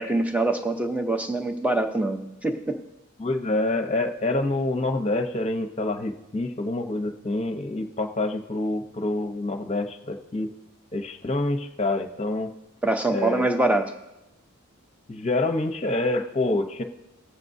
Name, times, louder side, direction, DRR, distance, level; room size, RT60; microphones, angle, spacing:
voice 1, 0.0-2.8 12.8-13.9, right 2 dB, 5° right, 5 dB, 0.7 m, -24 dB
voice 2, 3.2-10.5 10.9-12.5 13.1-13.5 15.1-16.8, left 2 dB, 30° left, 5 dB, 0.8 m, -27 dB
19.0 x 7.5 x 2.7 m, 0.94 s
head